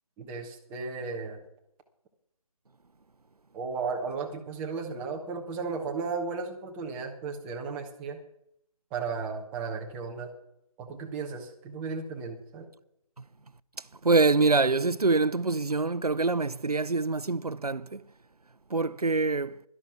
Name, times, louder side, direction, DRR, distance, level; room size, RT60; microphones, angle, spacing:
voice 1, 0.2-1.4 3.5-8.2 8.9-10.3 10.8-12.7, right 4 dB, 5° right, 0.8 m, -35 dB
voice 2, 14.0-18.0 18.7-19.6, right 3 dB, 85° right, 0.7 m, -25 dB
17.0 x 12.5 x 5.9 m
figure-of-eight pair, 155°, 19 cm